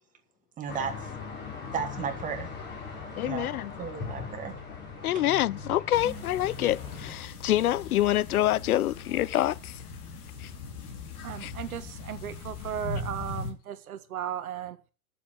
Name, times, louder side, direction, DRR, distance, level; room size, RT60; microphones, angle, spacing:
voice 1, 0.6-1.1 1.7-2.5 3.2-3.5 3.8-4.5 5.0-5.2 6.0-6.2, right 6 dB, 15° right, 2.1 m, -34 dB
sound 1, 0.7-7.1, left 5 dB, 25° left, 5.9 m, -40 dB
voice 2, 3.2-3.7 5.0-9.8 10.4-10.5 11.4-11.5, left 13 dB, 75° left, 0.6 m, -26 dB
sound 2, 5.9-13.5, left 4 dB, 45° left, 3.3 m, -40 dB
voice 3, 11.2-14.8, right 10 dB, 70° right, 1.5 m, -36 dB
9.3 x 7.3 x 8.1 m
hypercardioid pair, 135°, 45 cm